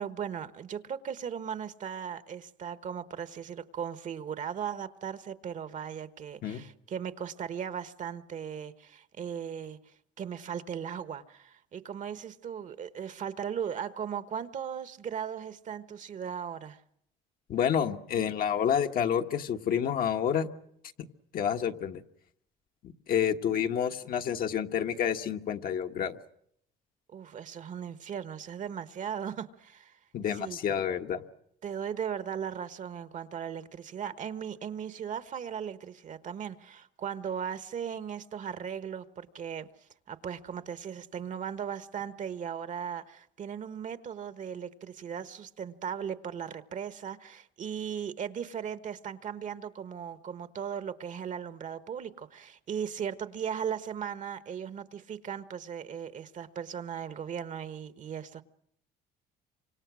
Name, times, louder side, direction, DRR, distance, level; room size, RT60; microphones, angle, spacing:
voice 1, 0.0-9.8 10.2-16.8 27.1-30.0 30.3-30.8 31.6-39.7 40.1-58.4, right 8 dB, 50° right, 1.2 m, -37 dB
voice 2, 17.5-20.5 21.3-22.0 22.8-26.2 30.1-31.2, left 8 dB, 60° left, 1.4 m, -29 dB
28.5 x 26.0 x 6.3 m
cardioid pair, 110°, 17 cm